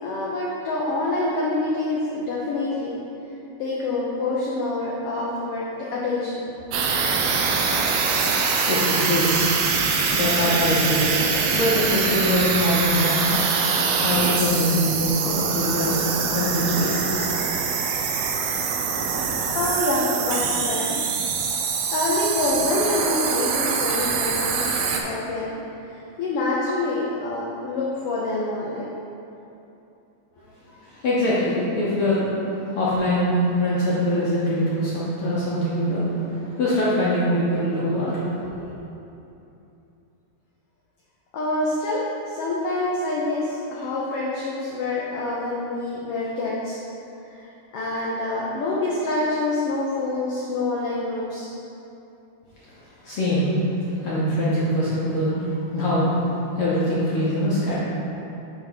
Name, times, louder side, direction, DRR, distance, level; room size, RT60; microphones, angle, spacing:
voice 1, 0.0-2.9 3.6-6.4 19.5-20.9 21.4-21.6 21.9-25.5 25.9-28.8 30.9-31.0 41.3-42.0 42.3-46.8 47.3-51.5 53.1-53.2, left 2 dB, 85° left, -5 dB, 1.3 m, -26 dB
sound 1, 6.7-25.0, right 5 dB, 85° right, 1.4 m, -24 dB
voice 2, 8.7-9.3 10.1-13.4 14.0-17.5 30.4-30.5 31.0-38.2 53.0-56.3 56.6-57.8, equal, 65° left, -9 dB, 1.4 m, -23 dB
6.9 x 3.3 x 5.9 m, 2.9 s
omnidirectional pair, 3.5 m